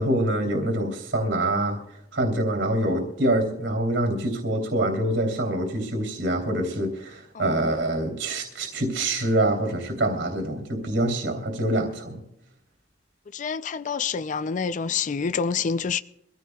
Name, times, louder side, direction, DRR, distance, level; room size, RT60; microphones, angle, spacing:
voice 1, 0.0-1.8 2.1-12.2, right 1 dB, 90° right, 3.2 m, -25 dB
voice 2, 13.3-16.0, left 6 dB, 45° left, 0.4 m, -27 dB
24.5 x 16.0 x 2.3 m
head